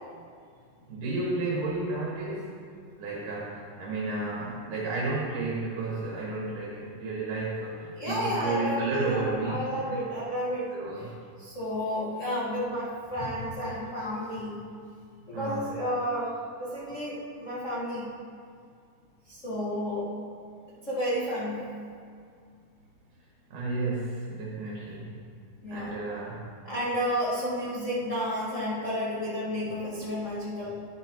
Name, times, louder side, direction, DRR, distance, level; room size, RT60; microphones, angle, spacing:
voice 1, 0.9-2.6 3.0-10.0 10.7-11.2 15.3-15.7 23.5-25.3 25.7-26.5, right 3 dB, 85° right, -4 dB, 2.9 m, -32 dB
voice 2, 8.0-11.1 11.4-14.7 15.3-16.3 16.6-18.1 19.3-20.1 20.7-21.8 25.6-25.9 26.6-30.9, equal, 35° left, -9 dB, 1.5 m, -31 dB
11.0 x 11.0 x 3.0 m, 2.2 s
omnidirectional pair, 3.5 m